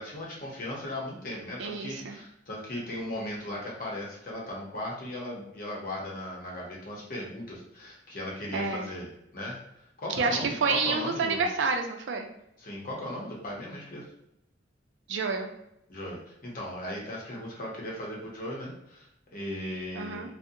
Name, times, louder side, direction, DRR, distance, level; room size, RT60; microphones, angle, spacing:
voice 1, 0.0-9.1 9.3-9.5 10.0-11.5 12.6-14.0 15.9-20.4, left 1 dB, 50° left, -3 dB, 0.8 m, -37 dB
voice 2, 1.6-2.2 8.5-8.9 10.1-12.3 15.1-15.5 19.9-20.3, right 4 dB, 90° right, 4 dB, 0.4 m, -29 dB
2.5 x 2.1 x 2.6 m, 0.81 s
head